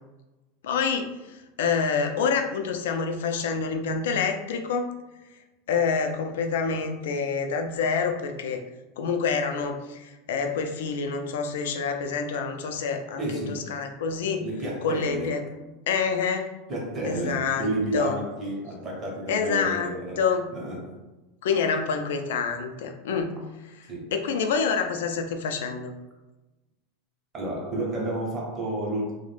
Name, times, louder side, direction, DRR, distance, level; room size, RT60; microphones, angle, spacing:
voice 1, 0.6-4.9 5.7-8.6 9.0-14.4 14.8-15.5 15.9-16.5 17.0-17.7 17.9-18.2 19.3-19.9 20.2-20.4 21.4-23.4 24.1-25.9, left 5 dB, 85° left, 5 dB, 0.3 m, -27 dB
voice 2, 13.2-13.7 14.4-15.4 16.7-20.2 20.5-21.0 23.9-24.1 27.3-29.1, right 1 dB, 25° right, -2 dB, 0.7 m, -31 dB
2.4 x 2.0 x 3.2 m, 1.1 s
supercardioid pair, 155°, 0 cm